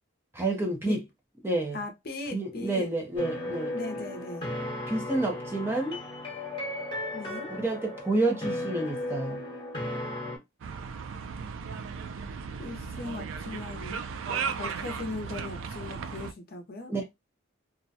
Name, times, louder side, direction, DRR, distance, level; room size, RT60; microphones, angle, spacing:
voice 1, 0.3-1.0 1.4-1.8 2.3-4.0 4.9-6.0 7.6-9.4 16.9-17.1, right 2 dB, 10° right, 0.5 m, -29 dB
voice 2, 1.7-2.9 3.7-4.5 7.1-7.5 12.6-14.0 14.3-16.9, left 2 dB, 50° left, 0.6 m, -38 dB
sound 1, 3.2-10.4, left 1 dB, 25° left, 0.9 m, -35 dB
sound 2, 10.6-16.3, right 6 dB, 85° right, 0.4 m, -36 dB
2.3 x 2.1 x 2.6 m
head